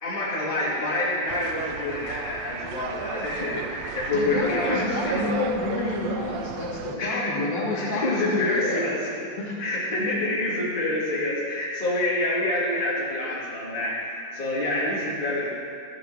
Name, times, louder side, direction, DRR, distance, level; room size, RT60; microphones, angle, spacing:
voice 1, 0.0-5.3 7.0-7.4 7.7-9.1 9.6-15.5, left 1 dB, 15° left, -7 dB, 2.1 m, -27 dB
sound 1, 1.3-7.0, right 9 dB, 85° right, 2.3 m, -35 dB
voice 2, 4.1-8.9 9.4-9.6, left 2 dB, 90° left, -4 dB, 3.8 m, -28 dB
12.5 x 7.9 x 5.7 m, 2.4 s
omnidirectional pair, 4.0 m